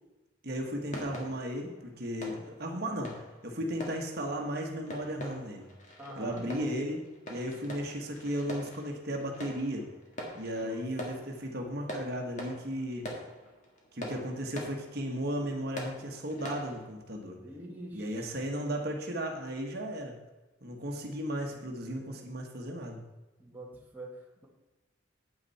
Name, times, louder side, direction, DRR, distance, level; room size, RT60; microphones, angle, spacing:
voice 1, 0.4-5.7 6.2-7.0 7.3-9.9 10.3-13.1 13.9-17.4 17.9-20.1 20.6-23.0, equal, 50° right, 1 dB, 1.3 m, -35 dB
sound 1, 0.9-16.9, equal, 35° left, 1.9 m, -45 dB
voice 2, 6.0-6.8 10.6-10.8 17.4-18.3 21.1-21.2 21.5-22.4 23.4-24.5, right 1 dB, 10° right, -3 dB, 1.4 m, -46 dB
9.1 x 9.1 x 4.2 m, 1.1 s
head